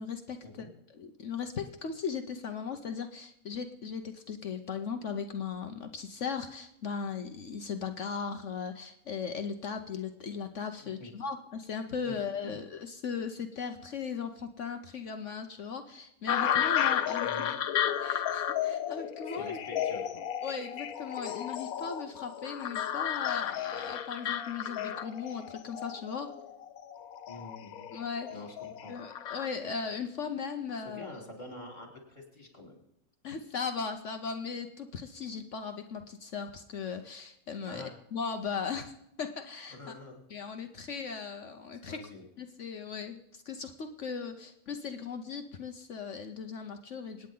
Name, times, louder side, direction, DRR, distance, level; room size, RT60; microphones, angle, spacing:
voice 1, 0.0-17.6 18.0-19.8 20.4-26.3 27.9-28.4 28.9-31.1 33.2-38.9 39.2-39.9 40.3-42.0 42.4-47.3, left 6 dB, 60° left, 7 dB, 1.2 m, -38 dB
sound 1, 16.3-29.5, left 10 dB, 85° left, 1.3 m, -33 dB
voice 2, 17.2-17.6 19.3-20.2 27.3-27.9 28.3-28.9 30.8-32.8 37.7-37.9 39.7-40.2 41.8-42.2, left 2 dB, 30° left, 0 dB, 4.1 m, -46 dB
26.5 x 9.5 x 3.9 m, 0.81 s
omnidirectional pair, 1.5 m